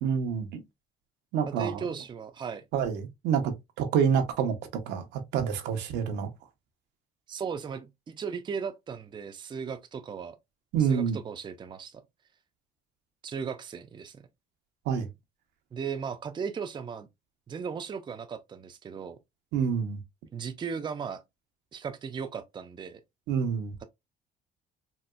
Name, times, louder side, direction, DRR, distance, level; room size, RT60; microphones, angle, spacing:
voice 1, 0.0-0.6 1.3-1.8 2.7-6.3 10.7-11.2 14.9-15.1 19.5-20.0 23.3-23.7, right 7 dB, 85° right, 0.8 m, -27 dB
voice 2, 1.5-2.7 7.3-10.4 10.8-12.0 13.2-14.3 15.7-17.1 17.5-19.2 20.3-21.2 21.7-23.0, right 6 dB, 30° right, 0.5 m, -36 dB
4.0 x 2.3 x 2.2 m
cardioid pair, 110°, 17 cm